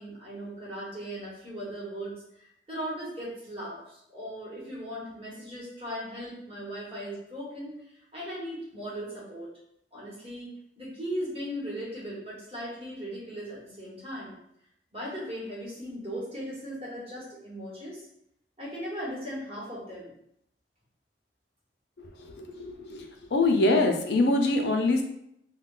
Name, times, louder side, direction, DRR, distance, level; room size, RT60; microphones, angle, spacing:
voice 1, 0.0-2.2 2.7-7.7 8.1-9.5 9.9-10.5 10.8-14.3 14.9-18.0 18.6-20.1, equal, 30° right, -6 dB, 1.1 m, -38 dB
voice 2, 22.4-25.0, left 2 dB, 65° left, 3 dB, 0.5 m, -24 dB
2.3 x 2.2 x 3.7 m, 0.74 s
head